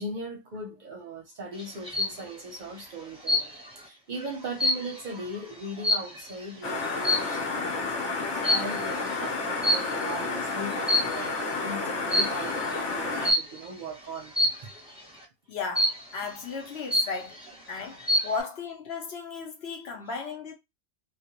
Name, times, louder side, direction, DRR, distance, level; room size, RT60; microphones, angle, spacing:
voice 1, 0.0-14.3 14.6-14.7, right 1 dB, 55° right, 0.6 m, -39 dB
sound 1, 1.6-2.2 3.3-3.8 4.2-6.4 7.0-7.4 8.4-8.8 9.6-10.2 10.7-11.4 12.1-12.5 13.2-13.6 14.4-14.8 15.8-16.2 16.6-16.7 16.9-17.5 17.9-18.4, left 1 dB, 5° right, 0.7 m, -26 dB
sound 2, 6.6-13.3, left 3 dB, 85° left, 1.2 m, -31 dB
voice 2, 15.5-17.4 17.7-20.5, left 4 dB, 65° left, 1.0 m, -35 dB
2.3 x 2.2 x 2.8 m
omnidirectional pair, 1.2 m